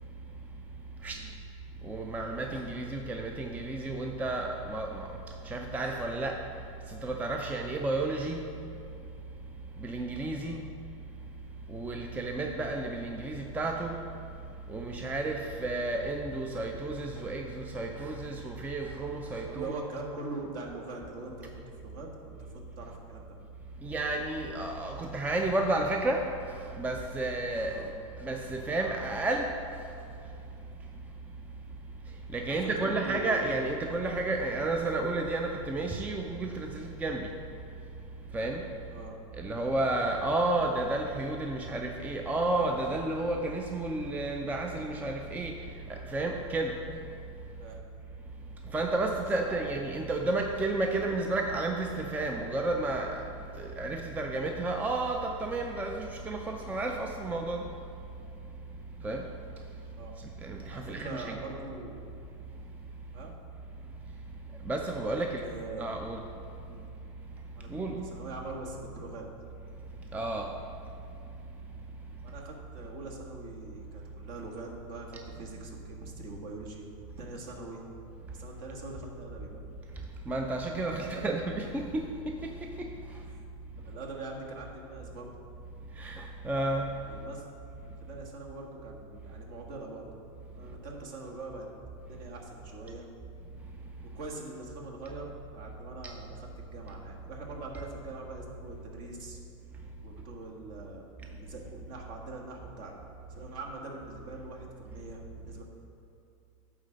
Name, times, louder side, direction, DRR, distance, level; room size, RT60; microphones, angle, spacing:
voice 1, 1.8-5.2 5.4-6.4 6.9-8.5 9.8-10.6 11.7-14.0 14.7-19.8 23.8-27.9 28.2-29.5 32.3-37.3 38.3-38.7 39.4-45.6 45.9-46.8 48.7-53.2 53.6-57.7 59.0-59.3 60.4-61.4 64.6-65.4 65.8-66.2 67.7-68.1 70.1-70.5 80.3-82.9 86.0-86.9 96.0-96.1, right 2 dB, 10° right, 3 dB, 0.4 m, -32 dB
voice 2, 19.5-21.5 21.8-22.3 22.8-23.4 27.7-27.9 32.5-33.5 38.9-39.2 47.6-47.8 49.4-49.7 60.0-60.1 60.7-62.0 63.1-63.3 65.0-65.1 65.4-65.8 66.6-66.9 67.5-69.3 72.2-76.8 77.2-77.8 78.3-79.6 80.9-81.4 83.2-83.4 83.8-85.4 87.1-87.4 87.8-90.2 90.5-91.7 92.1-93.1 94.1-99.4 100.0-102.9 103.3-105.6, right 2 dB, 50° right, 0 dB, 1.6 m, -43 dB
9.2 x 3.8 x 6.3 m, 2.6 s
supercardioid pair, 120°, 17 cm